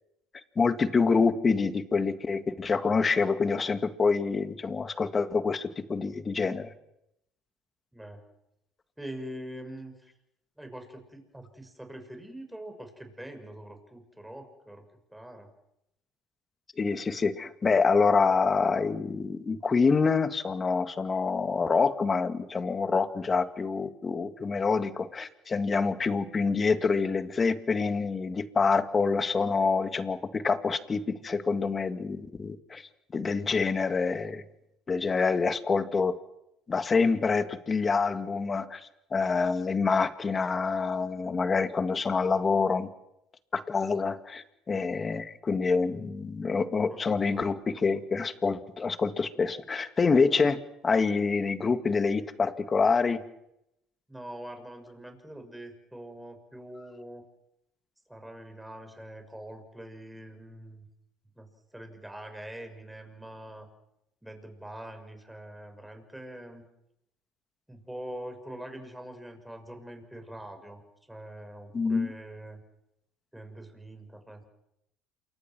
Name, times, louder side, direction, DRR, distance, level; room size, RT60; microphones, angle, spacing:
voice 1, 0.6-6.7 16.8-34.4 34.9-36.2 36.7-38.8 39.1-42.9 43.5-53.2 71.7-72.1, left 4 dB, 30° left, 10 dB, 2.0 m, -26 dB
voice 2, 7.9-8.2 9.0-10.1 10.6-15.5 46.9-47.2 54.1-57.2 58.1-60.9 61.4-63.7 64.2-66.7 67.7-72.6 73.3-74.4, right 1 dB, 5° right, 5 dB, 6.2 m, -44 dB
28.0 x 24.5 x 6.1 m, 0.83 s
supercardioid pair, 80°, 0 cm